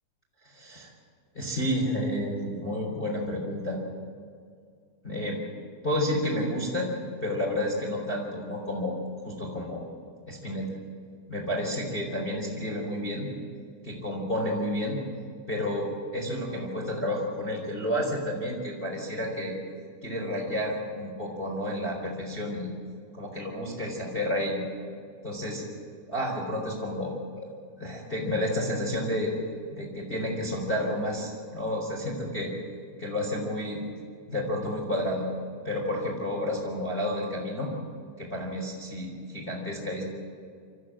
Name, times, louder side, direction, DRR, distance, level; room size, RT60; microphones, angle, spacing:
voice 1, 0.5-0.9 1.3-3.8 5.0-5.5 5.8-6.9 7.2-9.0 9.2-9.9 10.3-10.7 11.3-13.3 13.8-15.0 15.5-19.6 20.0-22.7 23.1-24.6 25.2-25.6 26.1-27.5 27.8-29.3 29.7-32.5 33.0-33.8 34.3-35.3 35.6-37.7 38.2-40.1, left 1 dB, 15° left, -2 dB, 3.5 m, -30 dB
27.0 x 14.5 x 7.5 m, 2.2 s
omnidirectional pair, 5.0 m